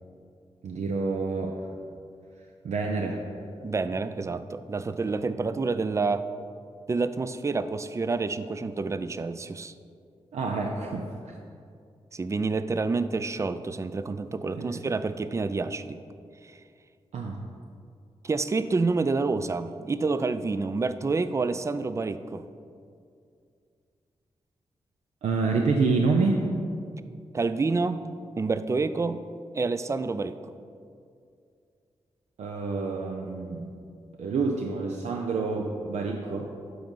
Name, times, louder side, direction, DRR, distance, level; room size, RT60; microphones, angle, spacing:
voice 1, 0.6-1.6 2.6-3.2 10.3-11.4 14.5-14.7 17.1-17.4 25.2-26.4 32.4-33.7 34.2-36.5, right 4 dB, 75° right, 1 dB, 0.5 m, -27 dB
voice 2, 3.6-6.2 6.9-9.7 12.1-16.0 18.2-22.5 27.3-29.2 29.5-30.4, right 3 dB, 25° right, 12 dB, 0.3 m, -28 dB
7.7 x 3.9 x 5.4 m, 2.3 s
cardioid pair, 55°, 11 cm